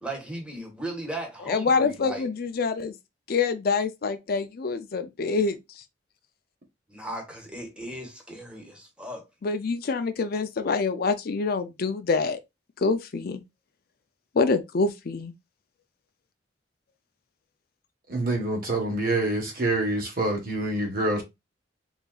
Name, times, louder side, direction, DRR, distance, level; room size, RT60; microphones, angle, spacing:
voice 1, 0.0-2.3 6.9-9.2, right 1 dB, 5° right, 1.4 m, -37 dB
voice 2, 1.5-2.9 3.3-5.5 9.4-12.4 12.8-13.4 14.4-15.3, left 4 dB, 55° left, 0.5 m, -26 dB
voice 3, 18.1-21.2, right 2 dB, 50° right, 1.4 m, -26 dB
3.9 x 3.8 x 2.4 m
head